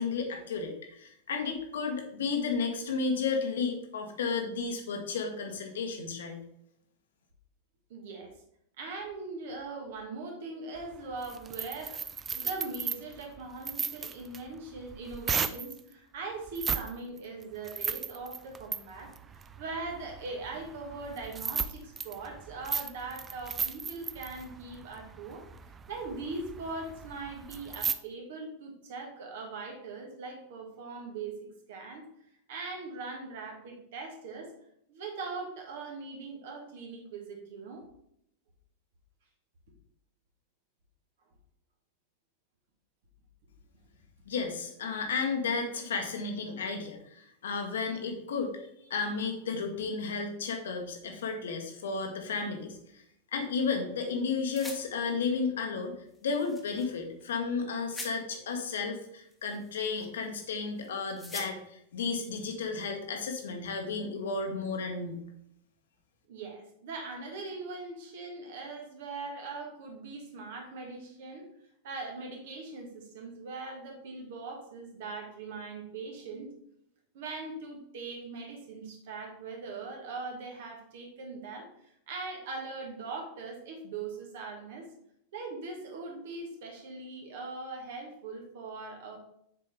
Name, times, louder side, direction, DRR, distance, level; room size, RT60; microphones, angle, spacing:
voice 1, 0.0-6.4 44.3-48.5 48.9-52.8 53.3-55.9 56.2-65.2, left 4 dB, 60° left, 4 dB, 1.1 m, -33 dB
voice 2, 7.9-8.3 8.8-19.1 19.6-25.4 25.9-32.0 32.5-34.5 34.9-37.8 66.3-71.4 71.8-76.5 77.1-81.7 82.1-84.9 85.3-89.2, right 3 dB, 55° right, 2 dB, 1.6 m, -41 dB
sound 1, 10.8-15.8 16.5-16.9 17.2-27.9, right 6 dB, 20° right, 0.4 m, -36 dB
sound 2, 54.5-54.8 56.1-56.9 57.2-57.3 57.9-58.1 59.2-60.4 60.8-61.5, left 1 dB, 5° left, 1.2 m, -44 dB
7.0 x 4.5 x 3.4 m, 0.75 s
figure-of-eight pair, 90°, 0 cm